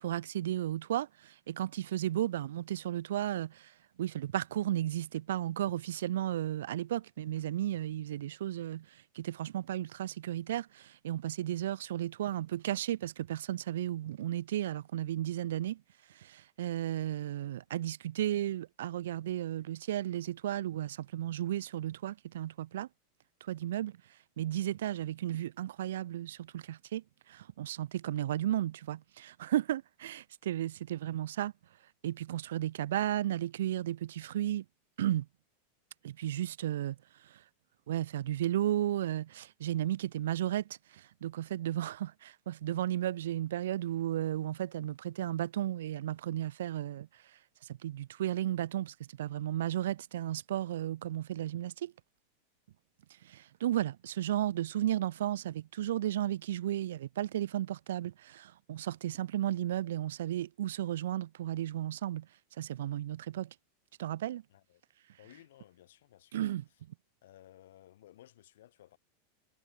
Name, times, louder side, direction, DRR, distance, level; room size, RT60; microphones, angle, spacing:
voice 1, 0.0-3.7 4.0-8.9 9.1-15.8 16.2-22.9 23.4-24.0 24.4-27.0 27.3-31.5 32.0-34.6 35.0-35.3 36.0-37.0 37.3-37.4 37.9-40.6 40.9-47.1 47.7-51.9 53.2-62.3 62.6-63.5 64.0-64.4 66.3-66.6, right 12 dB, 90° right, 0.7 m, -34 dB
voice 2, 64.5-64.8 65.2-66.8 67.2-69.0, left 13 dB, 75° left, 6.3 m, -58 dB
supercardioid pair, 170°, 0 cm